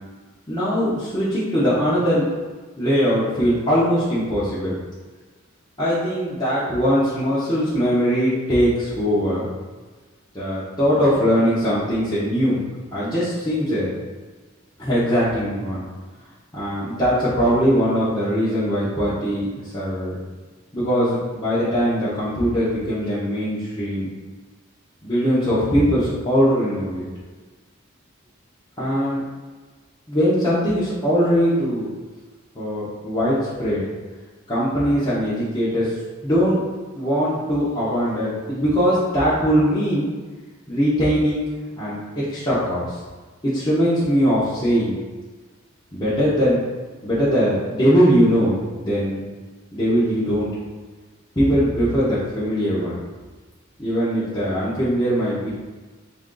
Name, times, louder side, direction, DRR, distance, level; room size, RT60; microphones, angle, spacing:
voice 1, 0.5-2.3 2.8-4.8 5.8-9.5 10.3-12.6 12.9-13.9 14.8-15.8 16.5-20.1 20.7-24.1 25.0-27.0 28.8-29.2 30.1-31.9 32.5-33.9 34.5-36.0 36.2-36.6 36.9-40.1 40.7-41.5 41.8-43.0 43.4-45.0 45.9-46.6 47.0-49.2 49.7-50.5 51.4-53.0 53.8-55.5, equal, 20° left, -12 dB, 0.9 m, -21 dB
3.6 x 2.6 x 3.8 m, 1.3 s
head